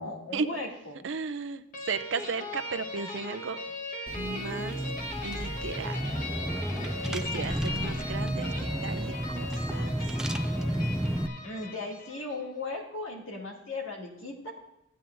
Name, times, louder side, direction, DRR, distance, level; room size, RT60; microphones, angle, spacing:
voice 1, 0.0-1.0 7.3-7.6 11.4-14.5, left 2 dB, 85° left, -2 dB, 2.4 m, -37 dB
voice 2, 1.0-3.6 4.2-4.8 5.2-6.1 7.0-10.0, right 5 dB, 70° right, 11 dB, 0.5 m, -35 dB
sound 1, 1.7-12.5, left 1 dB, 40° left, 1.2 m, -39 dB
Car / Engine, 4.1-11.3, equal, 5° right, 0.3 m, -32 dB
15.0 x 9.0 x 2.6 m, 0.85 s
head